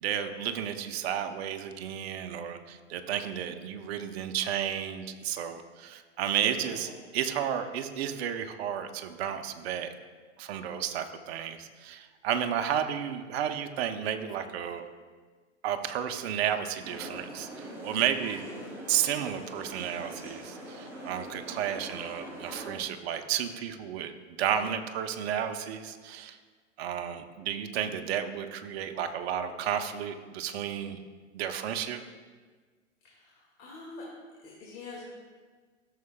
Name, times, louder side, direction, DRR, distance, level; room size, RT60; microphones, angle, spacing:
voice 1, 0.0-9.9 10.4-14.8 15.6-18.4 18.9-24.1 24.4-26.4 26.8-31.0 31.3-32.0, right 9 dB, 55° right, 7 dB, 0.8 m, -32 dB
voice 2, 6.4-6.9 33.0-34.0 34.4-35.0, left 3 dB, 35° left, -5 dB, 2.0 m, -45 dB
sound 1, 16.8-22.7, right 1 dB, 5° right, 2.7 m, -43 dB
14.0 x 6.6 x 2.2 m, 1.5 s
hypercardioid pair, 105°, 37 cm